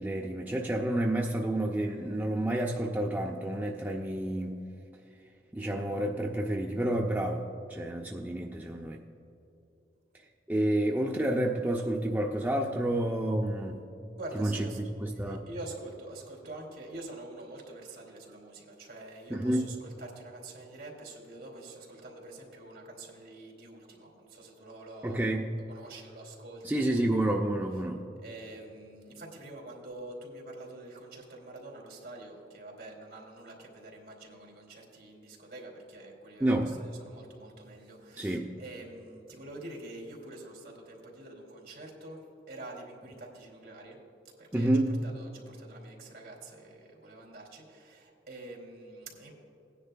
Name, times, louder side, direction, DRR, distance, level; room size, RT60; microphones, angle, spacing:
voice 1, 0.0-4.6 5.5-9.0 10.5-13.8 14.3-15.4 19.3-19.7 25.0-25.5 26.6-28.0 36.4-36.7 38.2-38.4 44.5-44.9, right 1 dB, 10° right, -1 dB, 0.4 m, -29 dB
voice 2, 14.2-14.8 15.1-25.3 25.7-26.6 28.2-44.0 44.4-44.7 45.0-49.3, right 2 dB, 60° right, -1 dB, 2.6 m, -46 dB
17.5 x 10.0 x 2.2 m, 2.8 s
head